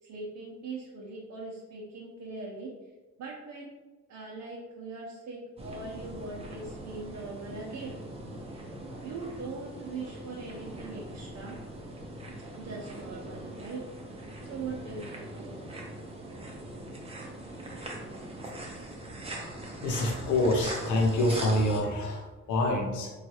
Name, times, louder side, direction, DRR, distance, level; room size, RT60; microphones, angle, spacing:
voice 1, 0.0-2.7 3.2-3.7 4.1-8.0 9.0-11.6 12.5-13.8 14.1-15.6, right 3 dB, 65° right, -4 dB, 0.6 m, -41 dB
sound 1, 5.6-21.8, right 1 dB, 20° right, 0.6 m, -41 dB
voice 2, 19.8-23.1, left 1 dB, 75° left, 1 dB, 0.6 m, -27 dB
3.2 x 2.3 x 2.8 m, 1.2 s
cardioid pair, 90°, 30 cm